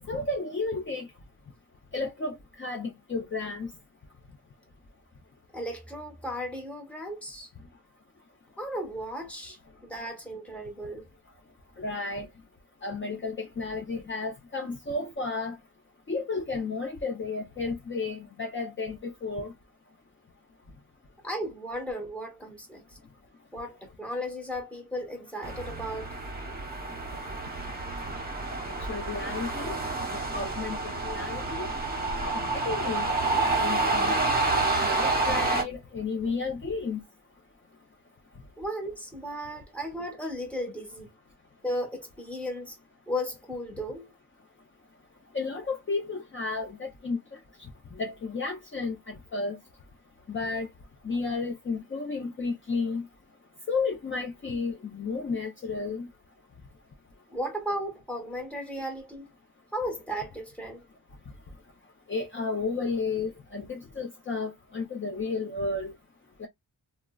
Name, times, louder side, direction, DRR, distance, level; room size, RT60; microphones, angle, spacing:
voice 1, 0.1-1.1 1.9-3.7 11.8-12.3 12.8-15.6 16.1-19.5 28.9-29.7 30.1-31.7 32.2-33.3 33.6-34.2 34.8-37.0 45.3-47.4 47.9-49.6 50.3-50.7 51.0-53.0 53.7-56.1 62.1-65.9 66.4-66.5, left 4 dB, 35° left, 0.6 m, -32 dB
voice 2, 5.5-7.5 8.6-11.1 21.2-22.8 23.5-26.2 38.6-41.1 41.6-42.8 43.1-44.1 57.3-59.3 59.7-60.8, equal, 5° left, 1.1 m, -35 dB
sound 1, 25.4-35.6, right 3 dB, 25° right, 1.0 m, -29 dB
3.6 x 2.1 x 2.3 m
wide cardioid pair, 140°, 35 cm